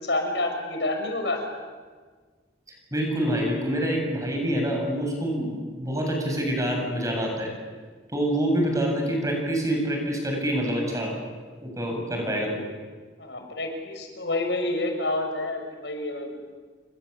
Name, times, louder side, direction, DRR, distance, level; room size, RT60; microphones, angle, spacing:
voice 1, 0.0-1.4 13.2-16.3, left 2 dB, 80° left, 4 dB, 6.4 m, -28 dB
voice 2, 2.9-7.5 8.1-11.1 11.6-12.6, equal, 20° right, 1 dB, 7.8 m, -26 dB
28.5 x 24.5 x 8.6 m, 1.5 s
head